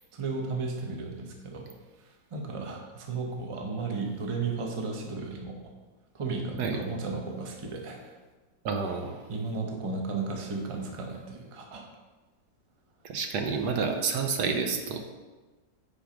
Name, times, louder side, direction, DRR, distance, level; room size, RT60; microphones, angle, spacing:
voice 1, 0.1-1.7 2.0-5.7 6.1-8.1 9.3-11.9, right 4 dB, 25° right, 1 dB, 0.7 m, -34 dB
voice 2, 8.6-9.2 13.0-15.0, right 5 dB, 70° right, 5 dB, 1.3 m, -29 dB
8.9 x 4.8 x 5.1 m, 1.3 s
omnidirectional pair, 2.0 m